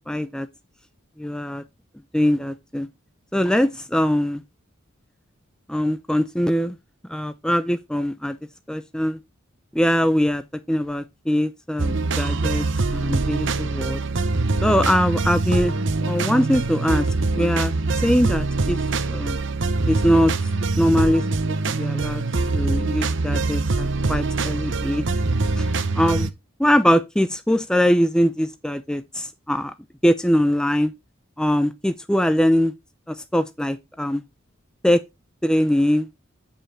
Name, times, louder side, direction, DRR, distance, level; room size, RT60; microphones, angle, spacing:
voice 1, 0.1-0.5 1.2-1.6 2.1-2.9 3.3-4.4 5.7-6.7 7.1-8.4 8.7-9.2 9.7-10.4 10.7-12.7 12.9-14.0 14.6-15.7 16.0-17.1 17.4-18.8 19.1-19.4 19.9-20.3 20.8-21.2 21.8-22.2 22.5-25.0 25.6-25.7 25.9-26.3 26.6-29.7 30.0-30.9 31.4-32.7 33.1-34.2 34.8-35.0 35.4-36.1, equal, 5° left, 0.4 m, -22 dB
sound 1, 11.8-26.3, right 3 dB, 60° right, 0.9 m, -23 dB
9.1 x 5.6 x 4.1 m
head